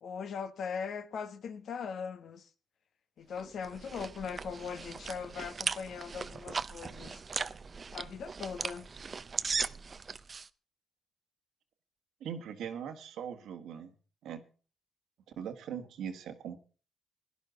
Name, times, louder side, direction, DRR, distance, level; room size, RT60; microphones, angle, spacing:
voice 1, 0.0-2.5 3.2-7.2 7.9-8.9, left 6 dB, 60° left, 1.1 m, -40 dB
sound 1, 3.4-10.5, right 5 dB, 35° right, 0.5 m, -38 dB
voice 2, 12.2-13.9 14.2-14.4 15.4-16.6, right 8 dB, 80° right, 1.5 m, -40 dB
16.5 x 11.0 x 4.0 m
cardioid pair, 90°, 0 cm